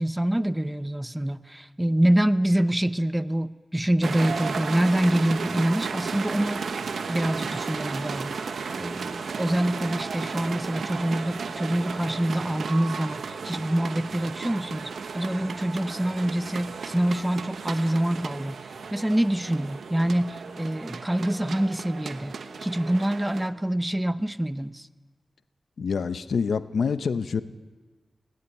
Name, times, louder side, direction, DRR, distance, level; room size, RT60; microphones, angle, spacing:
voice 1, 0.0-6.6 7.1-18.6 18.9-24.9, right 1 dB, 10° right, 13 dB, 0.7 m, -26 dB
sound 1, 4.0-23.5, right 5 dB, 90° right, 1.1 m, -34 dB
voice 2, 25.8-27.4, left 5 dB, 85° left, 12 dB, 0.8 m, -26 dB
19.0 x 18.0 x 8.5 m, 1.4 s
wide cardioid pair, 80°, 0 cm